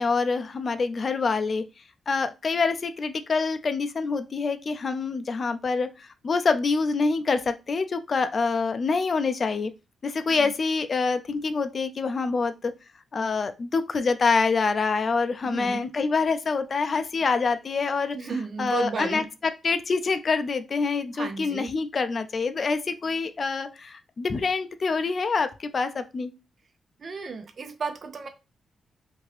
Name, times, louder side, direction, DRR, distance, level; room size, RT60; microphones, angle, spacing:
voice 1, 0.0-1.6 2.1-9.7 10.0-12.7 13.1-18.3 18.6-19.2 19.6-26.3, left 4 dB, 45° left, 9 dB, 0.3 m, -26 dB
voice 2, 15.4-15.9 18.1-19.3 21.1-21.7 27.0-28.3, right 4 dB, 45° right, 7 dB, 0.5 m, -33 dB
2.7 x 2.5 x 3.2 m, 0.27 s
cardioid pair, 90°, 0 cm